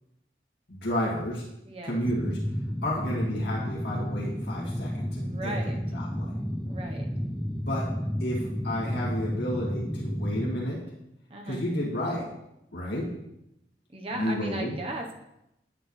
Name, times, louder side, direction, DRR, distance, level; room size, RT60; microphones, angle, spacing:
voice 1, 0.7-1.4 1.8-2.4 2.8-6.3 7.6-7.9 8.2-10.8 11.4-12.3 12.7-13.1 14.1-14.7, equal, 75° left, -5 dB, 2.1 m, -31 dB
voice 2, 1.6-2.0 2.9-3.2 5.2-5.8 6.7-7.1 11.3-11.6 13.9-15.1, right 1 dB, 35° right, 2 dB, 0.9 m, -37 dB
sound 1, 2.0-10.6, equal, ahead, 0.5 m, -32 dB
9.8 x 8.5 x 3.2 m, 0.84 s
head